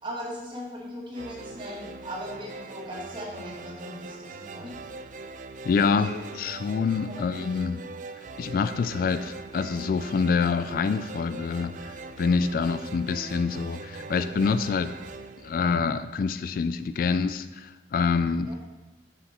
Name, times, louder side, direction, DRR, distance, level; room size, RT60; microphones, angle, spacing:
voice 1, 0.0-4.8 5.9-6.2 7.1-7.3 18.4-18.6, equal, 30° right, -4 dB, 2.0 m, -39 dB
sound 1, 1.1-16.4, right 3 dB, 45° right, 0.4 m, -42 dB
voice 2, 5.6-7.8 8.4-14.9 15.4-18.6, left 5 dB, 55° left, 12 dB, 0.3 m, -26 dB
7.0 x 6.6 x 4.3 m, 1.2 s
head